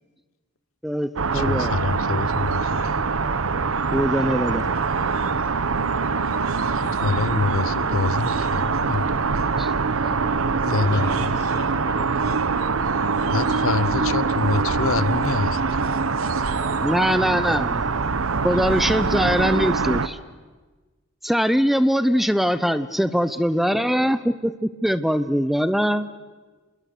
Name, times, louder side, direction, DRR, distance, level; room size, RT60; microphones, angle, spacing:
voice 1, 0.8-1.7 3.9-4.6 9.6-9.7 16.8-18.1 18.4-20.2 21.2-26.1, equal, ahead, 13 dB, 0.7 m, -22 dB
sound 1, 1.2-20.1, right 4 dB, 75° right, 0.9 m, -23 dB
voice 2, 1.3-2.9 6.7-9.1 10.6-11.1 13.3-15.6, left 4 dB, 75° left, 17 dB, 0.8 m, -26 dB
voice 3, 4.9-5.5 10.0-11.2 12.4-13.0 13.9-17.3, left 1 dB, 25° right, 2 dB, 5.6 m, -42 dB
voice 4, 10.2-12.4, left 2 dB, 55° left, 6 dB, 2.2 m, -37 dB
28.0 x 21.0 x 6.8 m, 1.3 s
head